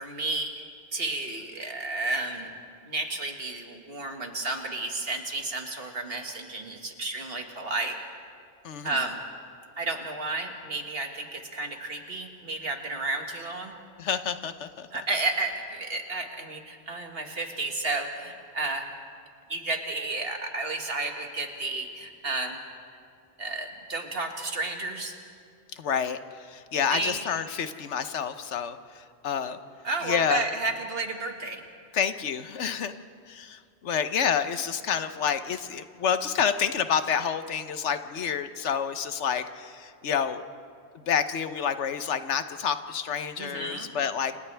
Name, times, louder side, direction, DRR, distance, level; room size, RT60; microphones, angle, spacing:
voice 1, 0.0-2.5 2.8-8.0 8.8-9.2 9.8-13.8 14.9-18.9 19.5-22.6 23.4-25.2 26.9-27.2 29.8-31.6 43.4-43.9, right 2 dB, 60° right, 3 dB, 2.0 m, -32 dB
voice 2, 8.6-9.1 14.0-14.9 25.7-29.6 30.0-30.5 31.9-33.0 33.3-40.4 40.9-44.3, left 7 dB, 85° left, 10 dB, 1.2 m, -29 dB
30.0 x 28.0 x 3.4 m, 2.2 s
omnidirectional pair, 1.2 m